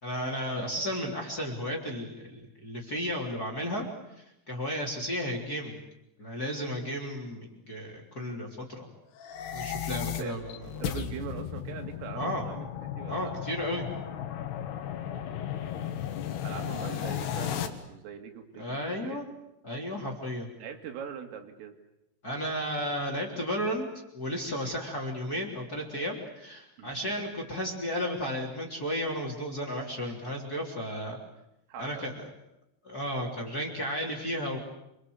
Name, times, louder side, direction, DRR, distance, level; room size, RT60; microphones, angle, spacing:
voice 1, 0.0-3.8 4.5-5.8 6.2-8.9 9.5-10.5 12.1-12.4 13.1-13.9 16.5-16.6 18.6-19.2 19.6-20.5 22.2-23.9 24.1-31.2 31.8-32.1 32.8-34.6, equal, 20° left, 0 dB, 3.2 m, -33 dB
sound 1, 9.2-17.7, left 9 dB, 65° left, 3.4 m, -35 dB
voice 2, 10.6-13.4 16.4-19.2 20.6-21.7 26.8-27.1 31.7-32.1, right 8 dB, 80° right, 4 dB, 5.0 m, -42 dB
27.5 x 25.0 x 8.0 m, 0.88 s
omnidirectional pair, 5.8 m